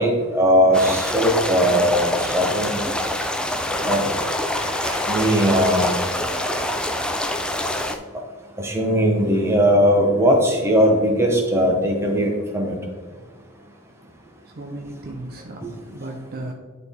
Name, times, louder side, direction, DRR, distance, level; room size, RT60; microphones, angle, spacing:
voice 1, 0.0-2.8 3.8-4.0 5.1-6.0 8.6-12.8 15.6-15.7, equal, 10° right, 1 dB, 1.1 m, -19 dB
sound 1, 0.7-8.0, left 1 dB, 5° left, 0.4 m, -25 dB
sound 2, 3.7-6.6, right 1 dB, 65° right, 1.6 m, -38 dB
voice 2, 14.6-16.5, right 2 dB, 45° right, 3 dB, 0.6 m, -35 dB
10.5 x 4.0 x 3.6 m, 1.5 s
head